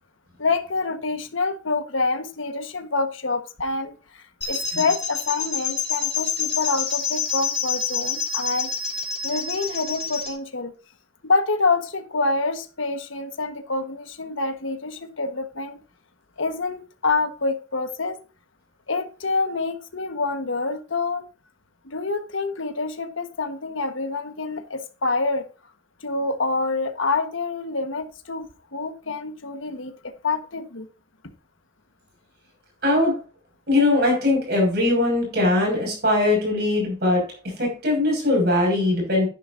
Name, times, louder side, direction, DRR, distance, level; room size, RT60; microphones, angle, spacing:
voice 1, 0.4-8.7 9.2-10.7 11.2-15.8 16.4-18.2 18.9-21.2 21.8-25.4 26.0-28.5 28.7-29.9 30.2-30.9, left 3 dB, 85° left, 7 dB, 1.4 m, -26 dB
sound 1, 4.4-10.3, left 7 dB, 35° left, 3.4 m, -27 dB
voice 2, 32.8-33.2 33.7-37.3 37.6-39.3, left 2 dB, 55° right, 0 dB, 5.9 m, -20 dB
11.0 x 10.5 x 2.6 m, 0.33 s
head